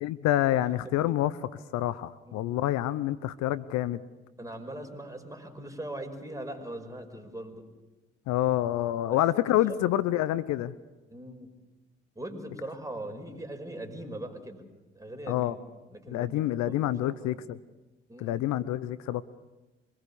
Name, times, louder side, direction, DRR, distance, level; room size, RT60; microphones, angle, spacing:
voice 1, 0.0-4.0 8.3-10.7 15.3-15.6 16.1-17.6 18.2-19.2, left 13 dB, 70° left, 16 dB, 0.8 m, -27 dB
voice 2, 2.3-2.6 4.4-7.6 9.1-9.4 9.7-9.8 11.1-11.5 12.2-14.7 14.9-15.6 15.9-17.5 18.1-18.5, right 1 dB, 10° right, 5 dB, 5.4 m, -41 dB
25.0 x 20.5 x 7.0 m, 1.1 s
hypercardioid pair, 45°, 29 cm